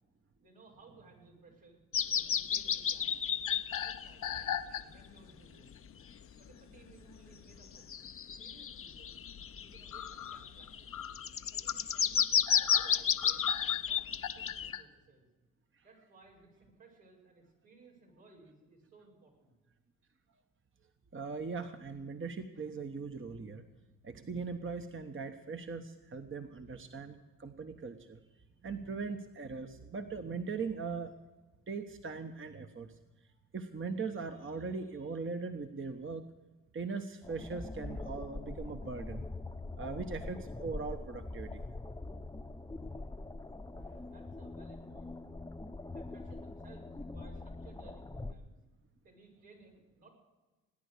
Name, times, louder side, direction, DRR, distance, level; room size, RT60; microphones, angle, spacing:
voice 1, 0.4-1.8 2.1-3.2 3.7-5.7 6.3-7.8 8.4-9.2 9.6-11.0 11.5-12.3 12.5-14.0 14.3-15.3 15.8-19.6 44.0-45.1 45.9-48.5 49.0-50.1, right 3 dB, 80° right, -3 dB, 5.9 m, -60 dB
sound 1, 1.9-4.1 4.7-4.8 5.7-5.8 7.8-14.7, left 8 dB, 40° left, 0.7 m, -32 dB
sound 2, 3.5-5.2 5.8-6.0 7.5-7.6 8.0-8.1 9.9-14.8, left 10 dB, 55° left, 1.2 m, -39 dB
voice 2, 21.1-23.7 24.0-28.2 28.6-31.2 31.7-33.0 33.5-36.2 36.7-39.2 39.8-41.6 43.8-44.0, right 4 dB, 35° right, 6 dB, 1.2 m, -40 dB
sound 3, 37.2-48.3, left 2 dB, 10° left, 0.9 m, -43 dB
19.0 x 10.0 x 6.8 m, 1.2 s
hypercardioid pair, 50°, 36 cm